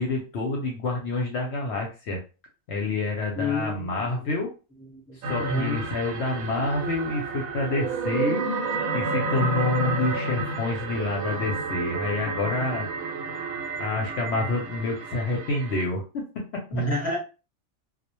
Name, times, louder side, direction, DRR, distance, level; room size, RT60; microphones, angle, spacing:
voice 1, 0.0-2.2 2.7-4.5 5.3-8.4 8.9-12.9 13.8-16.0 16.7-16.8, left 2 dB, 65° left, 0.7 m, -28 dB
voice 2, 3.4-3.9 5.1-5.8 16.7-17.2, left 1 dB, 10° right, 0.7 m, -28 dB
sound 1, 5.2-15.8, right 3 dB, 85° right, 1.0 m, -30 dB
2.2 x 2.1 x 2.9 m
omnidirectional pair, 1.4 m